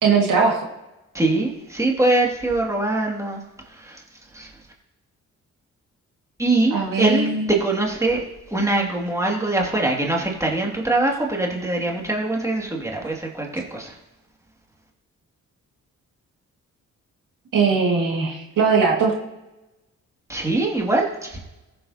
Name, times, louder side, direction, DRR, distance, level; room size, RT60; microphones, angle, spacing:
voice 1, 0.0-0.6 6.7-7.5 17.5-19.1, right 5 dB, 75° right, -1 dB, 2.1 m, -20 dB
voice 2, 1.1-3.4 3.8-4.0 4.3-4.5 6.4-8.2 8.5-14.0 20.3-21.4, right 2 dB, 10° right, -1 dB, 2.3 m, -23 dB
14.5 x 7.2 x 2.9 m, 0.97 s
cardioid pair, 65°, 32 cm